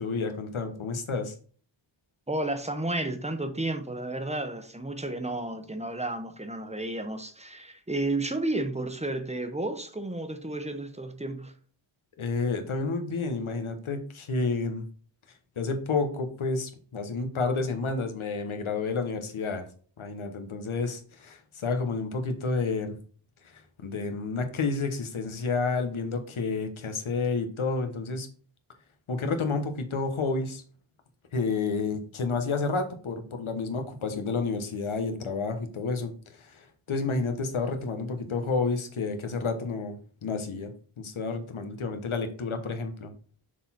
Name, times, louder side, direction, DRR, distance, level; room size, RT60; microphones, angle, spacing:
voice 1, 0.0-1.3 12.2-14.8 15.6-19.7 20.0-23.0 23.4-28.3 29.1-30.6 31.3-40.7 41.0-43.1, left 4 dB, 90° left, 1.2 m, -30 dB
voice 2, 2.3-11.5, right 2 dB, 15° right, 0.9 m, -32 dB
6.5 x 4.0 x 4.2 m
wide cardioid pair, 100°, 47 cm